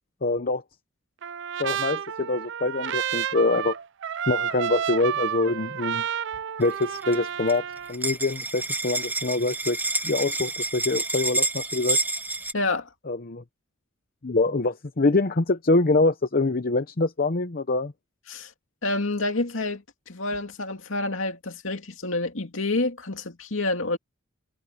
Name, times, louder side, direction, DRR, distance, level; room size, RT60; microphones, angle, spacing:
voice 1, 0.2-0.6 1.6-3.7 4.3-6.0 6.6-9.8 10.0-12.0 13.1-13.4 14.2-17.9, left 3 dB, 45° left, 0.8 m, -25 dB
Trumpet, 1.2-7.9, right 9 dB, 60° right, 0.5 m, -30 dB
sound 1, 6.6-7.1 7.5-12.5, right 2 dB, 10° right, 1.2 m, -28 dB
voice 2, 12.5-12.9 18.3-18.5 18.8-24.0, left 2 dB, 70° left, 2.6 m, -28 dB
head